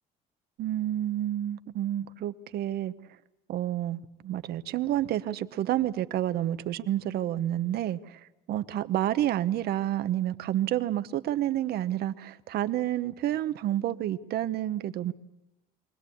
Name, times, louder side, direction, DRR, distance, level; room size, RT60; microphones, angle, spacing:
voice 1, 0.6-2.9 3.5-15.1, right 12 dB, 70° right, 12 dB, 0.9 m, -29 dB
23.5 x 17.5 x 8.5 m, 0.96 s
cardioid pair, 110°, 17 cm